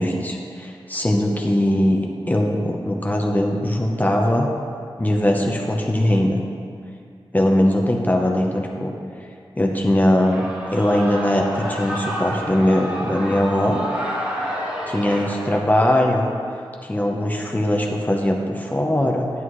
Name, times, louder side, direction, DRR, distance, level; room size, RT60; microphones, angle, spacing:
voice 1, 0.0-4.5 5.0-6.4 7.3-8.9 9.6-13.8 14.4-14.5 14.9-16.3 16.8-19.3, left 1 dB, 20° left, 0 dB, 0.8 m, -20 dB
Shout / Cheering, 10.2-15.6, equal, 15° right, 1.8 m, -29 dB
10.5 x 9.5 x 3.1 m, 2.3 s
wide cardioid pair, 100°, 9 cm